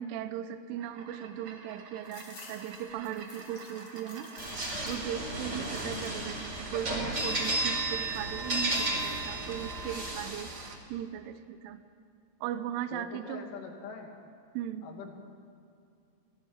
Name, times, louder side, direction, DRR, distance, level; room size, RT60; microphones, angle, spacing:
voice 1, 0.0-4.3 4.8-10.5 10.9-11.8 12.4-13.5 14.5-14.9, right 10 dB, 80° right, 10 dB, 3.3 m, -38 dB
sound 1, 0.7-10.8, right 5 dB, 55° right, 2.2 m, -48 dB
sound 2, 2.0-5.3 5.6-6.2 6.7-7.4, left 4 dB, 50° left, 4.7 m, -53 dB
sound 3, 4.4-10.7, right 2 dB, 25° right, 4.7 m, -33 dB
voice 2, 12.9-14.1 14.8-15.1, left 5 dB, 75° left, 1 dB, 4.9 m, -44 dB
26.0 x 18.5 x 8.9 m, 2.4 s
omnidirectional pair, 5.7 m